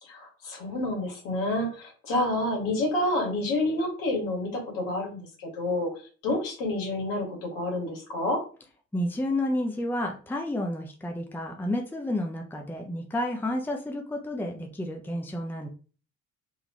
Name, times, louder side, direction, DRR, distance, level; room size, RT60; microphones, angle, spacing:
voice 1, 0.0-5.9 6.2-8.4, left 1 dB, 60° left, 0 dB, 2.0 m, -29 dB
voice 2, 8.9-15.7, left 1 dB, 5° left, 2 dB, 0.8 m, -30 dB
3.6 x 3.5 x 3.1 m, 0.39 s
figure-of-eight pair, 55°, 38 cm